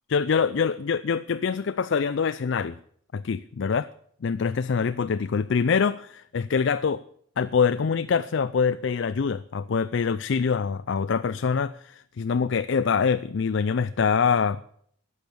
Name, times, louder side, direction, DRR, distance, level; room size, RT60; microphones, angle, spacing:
voice 1, 0.1-2.8 3.1-3.9 4.2-7.0 7.4-14.6, left 6 dB, 60° left, 0.4 m, -25 dB
12.0 x 8.1 x 8.5 m
head